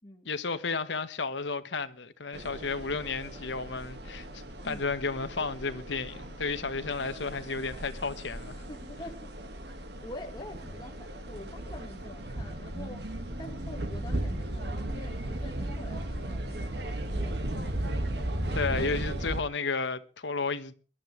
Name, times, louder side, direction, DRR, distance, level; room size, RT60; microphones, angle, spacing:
voice 1, 0.2-8.6 18.5-20.7, left 4 dB, 80° left, 1.2 m, -33 dB
sound 1, 2.3-19.4, right 1 dB, 65° right, 1.8 m, -36 dB
voice 2, 8.6-9.3 10.0-17.6 18.1-18.4, left 1 dB, 25° left, 1.7 m, -46 dB
22.0 x 11.5 x 3.2 m
head